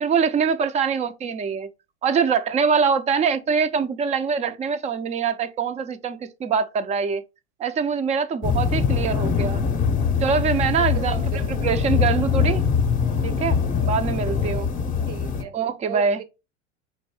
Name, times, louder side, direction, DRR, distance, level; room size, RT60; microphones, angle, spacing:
voice 1, 0.0-1.7 2.0-7.2 7.6-9.6 10.2-12.6 13.2-14.7 15.5-16.2, right 6 dB, 20° right, 0.4 m, -24 dB
sound 1, 8.4-15.4, left 6 dB, 25° left, 0.7 m, -23 dB
voice 2, 10.9-11.5 14.2-14.7 15.1-15.6 15.8-16.2, right 10 dB, 75° right, 1.0 m, -36 dB
4.3 x 2.6 x 4.7 m
hypercardioid pair, 115°, 36 cm